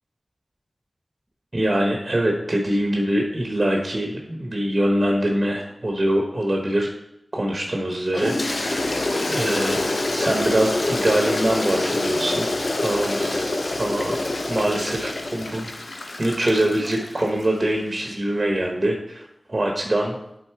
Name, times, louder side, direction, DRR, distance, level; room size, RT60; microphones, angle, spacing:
voice 1, 1.5-6.9 7.3-9.8 10.1-12.5 12.8-13.5 13.8-14.2 14.5-15.7 16.2-19.2 19.5-20.2, right 1 dB, 40° right, 1 dB, 1.1 m, -23 dB
Toilet flush, 8.1-17.5, left 2 dB, 60° left, 0.7 m, -26 dB
7.9 x 4.2 x 4.6 m, 0.80 s
wide cardioid pair, 60°, 0 cm